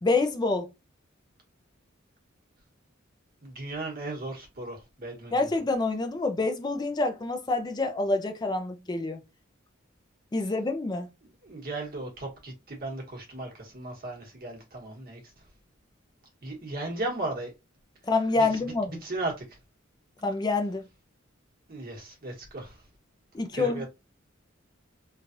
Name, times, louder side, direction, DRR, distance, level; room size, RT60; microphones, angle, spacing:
voice 1, 0.0-0.7 5.3-9.2 10.3-11.1 18.1-19.0 20.2-20.8 23.3-23.9, left 3 dB, 20° left, 0.4 m, -27 dB
voice 2, 3.4-5.4 11.2-15.2 16.4-17.5 18.4-18.5 18.9-19.4 21.7-22.8 23.5-23.9, right 2 dB, 45° right, 1.2 m, -36 dB
3.1 x 2.3 x 2.6 m
head